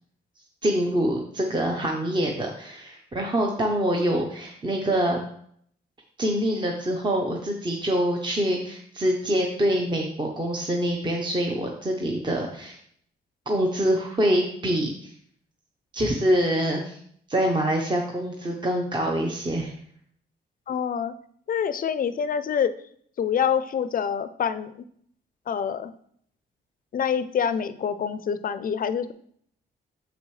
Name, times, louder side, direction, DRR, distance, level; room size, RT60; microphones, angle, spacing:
voice 1, 0.6-5.2 6.2-12.8 13.5-15.1 15.9-17.0 17.3-19.7, right 1 dB, 25° right, 1 dB, 0.9 m, -25 dB
voice 2, 20.7-21.1 21.5-22.7 23.2-24.7 25.5-25.9 26.9-29.1, left 7 dB, 45° left, 13 dB, 0.5 m, -26 dB
7.1 x 6.2 x 3.2 m, 0.65 s
cardioid pair, 95°, 19 cm